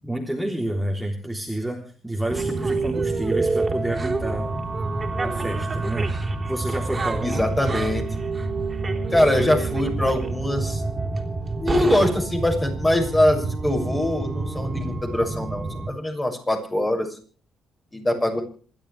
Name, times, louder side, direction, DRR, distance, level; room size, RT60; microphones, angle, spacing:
voice 1, 0.0-4.5 5.2-6.1 6.5-7.5, right 1 dB, ahead, 0 dB, 3.4 m, -29 dB
sound 1, 2.3-15.9, right 3 dB, 30° right, 3.8 m, -27 dB
voice 2, 7.2-8.2 9.1-10.8 11.6-17.2 17.9-18.4, left 1 dB, 15° left, 4 dB, 6.8 m, -23 dB
27.5 x 12.5 x 3.4 m, 0.41 s
cardioid pair, 90°, 0 cm